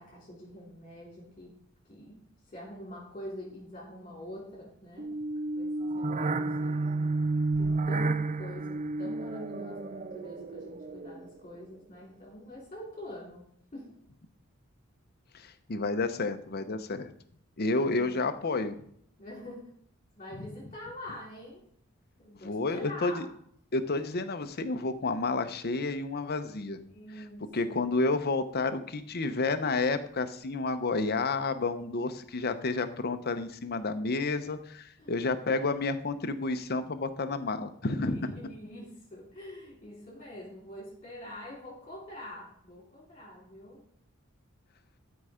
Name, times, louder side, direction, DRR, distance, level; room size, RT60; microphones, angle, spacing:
voice 1, 0.0-1.5 1.8-5.1 5.5-13.9 17.6-18.5 19.2-19.7 20.1-21.6 22.2-23.3 26.9-28.0 35.0-35.2 38.0-43.8, left 1 dB, 30° left, -4 dB, 3.3 m, -45 dB
sound 1, 5.0-11.4, right 3 dB, 35° right, 0.5 m, -31 dB
voice 2, 15.3-17.1 17.6-18.8 20.4-20.5 22.4-23.2 23.7-26.8 27.5-38.4, left 3 dB, 50° left, 10 dB, 0.8 m, -30 dB
13.0 x 4.7 x 5.0 m, 0.65 s
head